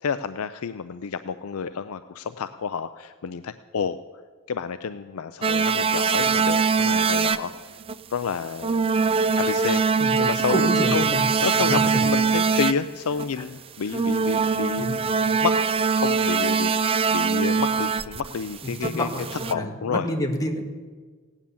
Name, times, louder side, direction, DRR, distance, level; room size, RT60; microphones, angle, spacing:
voice 1, 0.0-4.0 4.5-7.5 8.1-9.8 10.2-11.1 11.4-15.0 15.3-15.6 15.9-19.1 19.5-20.1, left 6 dB, 75° left, 11 dB, 0.5 m, -30 dB
sound 1, 5.4-7.5 7.8-7.9 8.6-12.7 13.1-13.3 13.9-19.5, right 5 dB, 25° right, 0.4 m, -22 dB
voice 2, 10.0-11.2 11.6-12.0 14.8-15.0 18.6-20.6, equal, 15° left, 2 dB, 1.8 m, -28 dB
17.5 x 9.8 x 7.1 m, 1.5 s
head